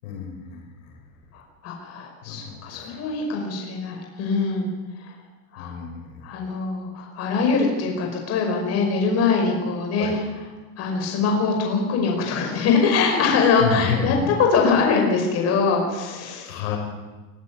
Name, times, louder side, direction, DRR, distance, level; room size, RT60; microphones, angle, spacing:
voice 1, 0.0-1.0 2.2-3.0 5.6-6.2 10.0-10.2 13.6-14.3 16.5-16.8, left 6 dB, 80° left, 2 dB, 6.5 m, -30 dB
voice 2, 1.3-4.7 5.0-5.1 5.5-5.8 6.2-10.2 10.8-16.5, left 4 dB, 35° left, 1 dB, 5.6 m, -23 dB
23.0 x 15.0 x 9.8 m, 1.2 s
supercardioid pair, 155°, 42 cm